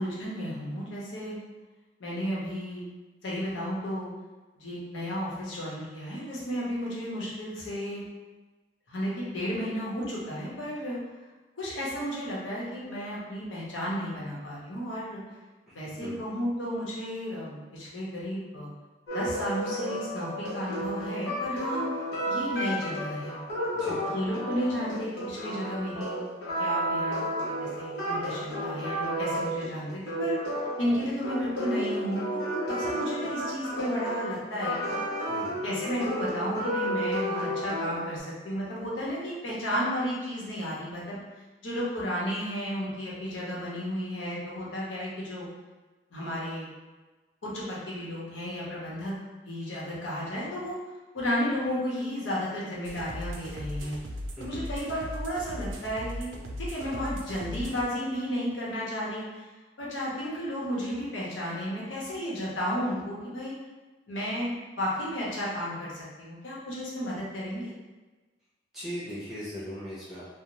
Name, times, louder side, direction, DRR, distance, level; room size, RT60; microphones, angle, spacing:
voice 1, 0.0-1.4 2.0-2.8 3.2-4.1 4.6-8.0 8.9-11.0 11.6-15.2 15.7-18.7 19.1-21.8 22.3-23.4 23.8-26.3 26.6-30.3 30.8-35.0 35.6-41.2 41.6-45.5 46.1-46.7 47.4-49.1 49.4-50.8 51.1-54.0 54.4-59.4 59.8-63.5 64.1-67.7, equal, 90° left, -6 dB, 0.8 m, -33 dB
voice 2, 15.7-16.2 23.7-24.0 35.2-35.7 54.3-54.6 68.7-70.3, equal, ahead, -11 dB, 0.9 m, -39 dB
sound 1, 19.1-38.2, equal, 60° left, 0.8 m, -32 dB
sound 2, 52.8-57.8, equal, 85° right, 0.4 m, -38 dB
2.5 x 2.0 x 3.0 m, 1.2 s
head